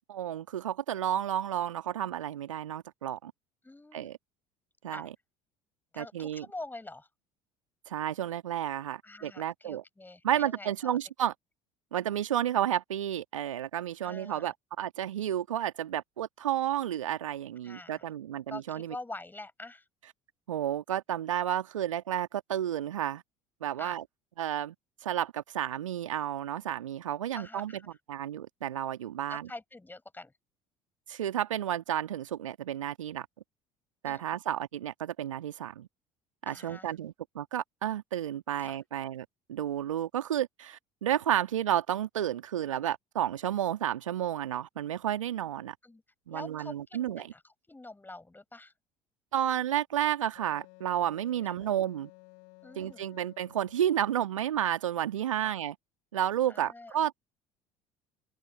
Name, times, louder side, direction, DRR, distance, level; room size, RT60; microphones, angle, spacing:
voice 1, 0.1-3.3 3.9-4.2 4.8-5.1 6.0-6.5 7.9-9.8 10.2-11.3 11.9-19.0 20.5-23.2 23.6-24.0 24.4-24.7 25.0-27.7 28.1-29.5 31.1-33.3 34.0-35.9 36.4-45.8 46.3-47.3 49.3-52.1 52.8-55.7 56.1-57.2, right 11 dB, 75° right, 1.9 m, -31 dB
voice 2, 3.6-4.1 4.9-5.1 5.9-7.1 9.0-11.3 14.0-14.5 17.6-18.1 18.5-19.9 23.8-24.0 27.3-27.9 29.3-30.3 34.0-34.2 36.5-36.9 38.6-38.8 45.8-46.0 46.3-48.7 51.4-51.5 52.6-53.0 55.4-55.5 56.5-57.0, left 2 dB, 10° left, 6.0 m, -46 dB
Wind instrument woodwind instrument, 50.3-54.4, left 34 dB, 60° left, 5.4 m, -55 dB
figure-of-eight pair, 60°, 17 cm